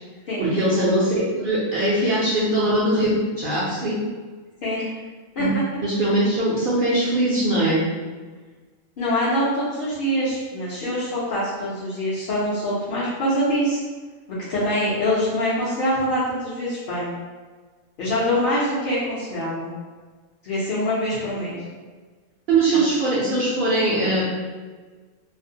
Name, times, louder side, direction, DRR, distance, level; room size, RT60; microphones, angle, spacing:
voice 1, 0.4-4.0 5.4-7.8 22.5-24.3, right 1 dB, 60° right, -7 dB, 0.5 m, -21 dB
voice 2, 9.0-13.8 14.5-17.2 18.0-19.7 20.4-21.6, equal, 55° left, -10 dB, 0.6 m, -24 dB
2.5 x 2.0 x 2.6 m, 1.4 s
omnidirectional pair, 1.4 m